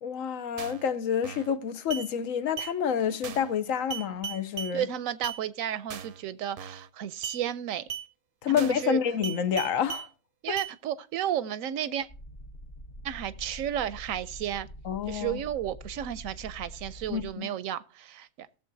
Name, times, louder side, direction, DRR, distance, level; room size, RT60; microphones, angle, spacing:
voice 1, 0.0-4.9 8.4-10.1 10.5-10.6 14.9-15.4 17.1-17.5, left 8 dB, 80° left, 1.2 m, -28 dB
sound 1, 0.6-0.9 1.2-1.5 1.9-2.1 2.6-2.7 3.2-3.5 3.9-4.7 5.2-5.4 5.9-6.2 6.6-6.9 7.2-7.4 7.9-8.1 8.6-8.9 9.2-10.1 10.6-10.7, right 8 dB, 55° right, 0.7 m, -37 dB
voice 2, 4.7-7.8 8.5-9.0 10.4-12.1 13.0-14.7 15.1-18.5, right 10 dB, 85° right, 1.0 m, -33 dB
sound 2, 12.1-17.4, equal, 40° left, 0.9 m, -45 dB
18.5 x 7.2 x 2.6 m
omnidirectional pair, 1.4 m